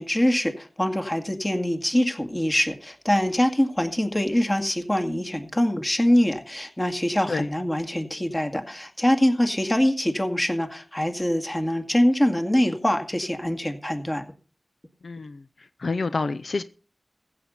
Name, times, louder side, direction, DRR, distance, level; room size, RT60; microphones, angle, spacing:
voice 1, 0.0-14.2, equal, 20° left, 5 dB, 2.1 m, -24 dB
voice 2, 15.0-16.6, left 3 dB, 75° left, 12 dB, 0.6 m, -29 dB
15.5 x 7.9 x 5.5 m, 0.37 s
wide cardioid pair, 65°, 0 cm